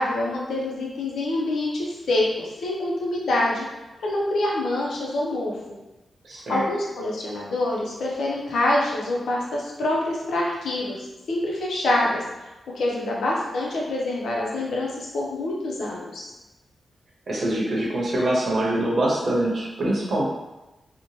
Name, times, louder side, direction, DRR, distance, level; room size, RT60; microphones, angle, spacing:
voice 1, 0.0-3.7 4.0-5.6 6.5-11.0 11.3-12.2 12.8-16.3, left 1 dB, 90° left, -3 dB, 0.6 m, -26 dB
voice 2, 6.2-6.7 17.3-20.2, right 1 dB, 60° right, -4 dB, 0.7 m, -24 dB
2.8 x 2.1 x 3.0 m, 1.0 s
cardioid pair, 80°, 0 cm